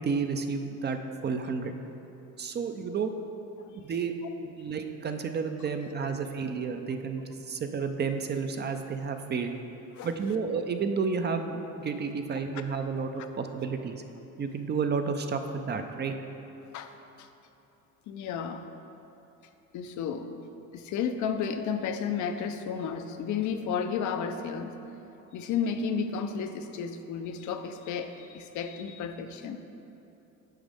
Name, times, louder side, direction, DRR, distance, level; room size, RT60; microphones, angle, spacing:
voice 1, 0.0-1.7 2.4-3.1 3.8-4.1 4.4-9.5 10.0-14.0 14.4-16.1, right 5 dB, 35° right, 6 dB, 0.5 m, -31 dB
voice 2, 18.1-18.6 19.7-20.3 20.7-24.8 25.3-29.6, left 6 dB, 65° left, 7 dB, 0.6 m, -32 dB
9.1 x 6.2 x 3.5 m, 3.0 s
cardioid pair, 105°, 32 cm